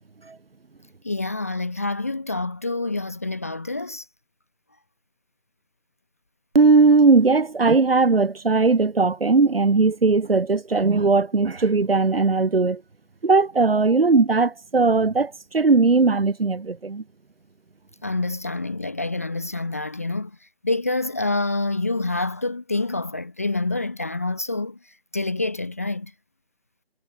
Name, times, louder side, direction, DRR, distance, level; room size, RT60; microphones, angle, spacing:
voice 1, 1.0-4.1 18.0-20.4 20.6-24.8 25.1-26.1, left 2 dB, 15° left, 0.7 m, -27 dB
voice 2, 6.5-12.8 13.2-17.0, right 4 dB, 70° right, 1.7 m, -18 dB
figure-of-eight pair, 160°, 30 cm